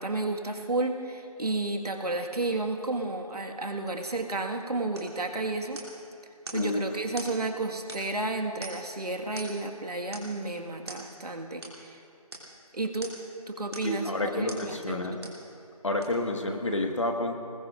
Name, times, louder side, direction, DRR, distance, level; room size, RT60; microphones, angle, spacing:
voice 1, 0.0-5.8 6.5-12.0 12.7-13.1 13.5-15.3, right 2 dB, 80° right, 3 dB, 1.8 m, -32 dB
sound 1, 4.9-5.2 5.8-6.0 6.5-6.7 7.2-7.4 7.9-8.2 8.6-9.0 9.4-9.7 10.1-10.4 10.9-11.1 11.6-11.8 12.3-12.5 13.0-13.3 13.7-14.0 14.5-14.7 15.2-15.4 16.0-16.1, right 2 dB, 45° right, 3.1 m, -43 dB
voice 2, 6.5-6.8 13.8-15.2 15.8-17.3, left 2 dB, 50° left, 3 dB, 1.6 m, -29 dB
26.5 x 20.5 x 2.5 m, 2.5 s
figure-of-eight pair, 175°, 20 cm